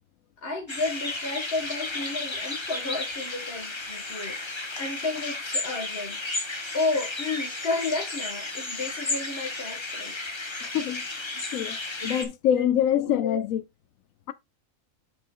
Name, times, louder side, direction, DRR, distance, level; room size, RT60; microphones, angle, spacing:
voice 1, 0.4-4.4 4.8-6.2 6.7-10.1 11.3-11.4 12.0-12.1 12.5-13.4, left 3 dB, 50° left, 1.6 m, -32 dB
sound 1, 0.7-12.2, left 2 dB, 20° left, 1.1 m, -33 dB
voice 2, 10.6-11.0 11.5-11.8 12.0-13.6 14.3-14.4, left 10 dB, 85° left, 1.0 m, -25 dB
8.8 x 4.5 x 3.7 m
omnidirectional pair, 1.4 m